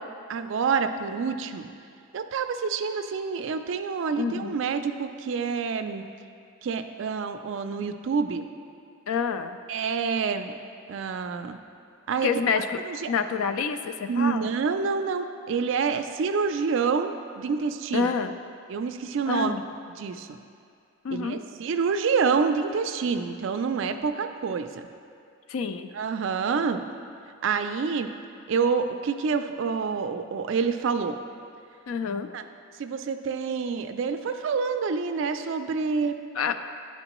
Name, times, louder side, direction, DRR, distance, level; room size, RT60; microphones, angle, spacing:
voice 1, 0.3-1.7 2.1-6.0 6.6-8.5 9.7-10.5 10.9-11.6 12.1-12.3 12.6-13.1 14.1-18.1 18.7-19.6 20.0-20.3 21.1-24.8 25.9-26.8 27.4-28.1 28.5-31.2 32.3-32.4 32.8-36.2, right 5 dB, 60° right, 8 dB, 0.3 m, -27 dB
voice 2, 4.2-4.6 9.1-9.6 12.2-12.7 13.1-14.5 17.9-18.3 19.3-19.6 21.0-21.4 25.5-25.9 31.9-32.3 36.4-36.6, left 6 dB, 75° left, 9 dB, 0.3 m, -27 dB
10.5 x 4.3 x 3.0 m, 2.4 s
head